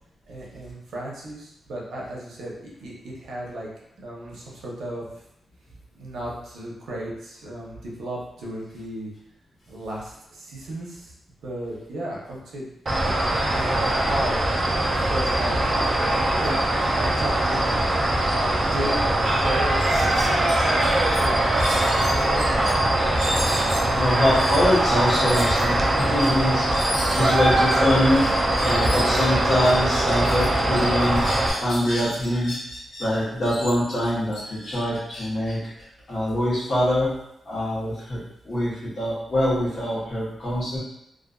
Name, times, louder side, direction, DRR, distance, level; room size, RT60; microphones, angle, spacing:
voice 1, 0.3-3.7 4.0-5.0 5.9-9.1 9.7-11.1 11.4-12.7 13.0-14.4 15.1-16.1 16.4-17.8 18.3-19.0 19.3-20.8 21.2-21.4 22.1-22.7, right 1 dB, 90° right, -4 dB, 0.7 m, -34 dB
sound 1, 12.9-31.5, right 1 dB, 30° right, 0.4 m, -22 dB
sound 2, 18.8-18.9 19.2-19.4 19.8-22.7 23.1-30.5 30.7-33.0 33.4-36.3, left 1 dB, 70° left, 0.9 m, -34 dB
voice 2, 23.9-26.7 27.2-28.3 28.6-31.2 31.6-32.5 33.0-35.6 36.1-37.1 37.5-38.2 38.4-40.8, equal, 40° left, -8 dB, 1.0 m, -23 dB
2.4 x 2.3 x 2.3 m, 0.78 s
wide cardioid pair, 170°, 0 cm